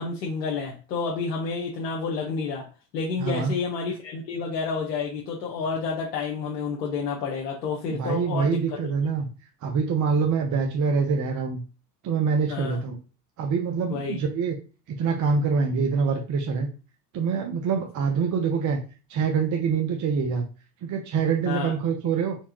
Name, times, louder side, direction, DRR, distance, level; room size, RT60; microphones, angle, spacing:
voice 1, 0.0-2.7 2.9-8.6 12.5-12.8 13.9-14.2 21.5-21.7, left 4 dB, 85° left, -2 dB, 1.1 m, -29 dB
voice 2, 3.2-3.5 7.9-9.3 9.6-11.6 12.0-13.0 13.4-14.6 14.9-16.7 17.1-18.8 19.1-20.5 20.8-22.4, right 5 dB, 40° right, 3 dB, 0.8 m, -25 dB
4.6 x 3.5 x 2.9 m, 0.34 s
hypercardioid pair, 90°, 49 cm